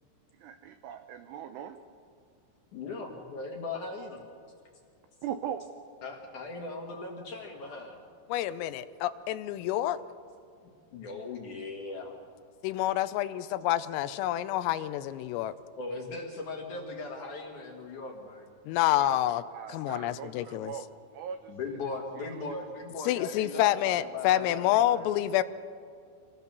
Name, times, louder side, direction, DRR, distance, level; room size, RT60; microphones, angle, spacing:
voice 1, 0.3-1.8 5.2-5.7 19.0-19.2 19.5-21.9 22.2-22.6, right 9 dB, 85° right, 8 dB, 2.4 m, -40 dB
voice 2, 2.7-4.2 6.0-8.0 10.9-12.2 15.8-18.5 21.5-25.1, left 3 dB, 60° left, 1 dB, 2.2 m, -39 dB
voice 3, 8.3-10.0 12.6-15.5 18.7-19.4 19.7-20.7 23.1-25.4, left 13 dB, 85° left, 13 dB, 3.3 m, -28 dB
26.5 x 18.5 x 6.8 m, 2.3 s
omnidirectional pair, 5.9 m